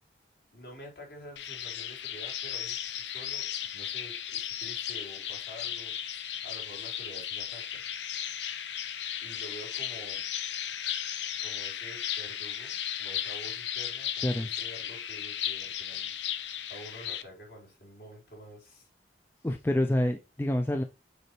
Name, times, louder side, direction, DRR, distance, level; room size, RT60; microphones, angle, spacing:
voice 1, 0.5-7.8 9.2-10.2 11.4-18.9, equal, 60° left, 4.1 m, -48 dB
sound 1, 1.4-17.2, left 10 dB, 85° left, 0.7 m, -35 dB
voice 2, 19.4-20.8, left 1 dB, 10° left, 0.4 m, -27 dB
6.7 x 5.2 x 3.2 m
head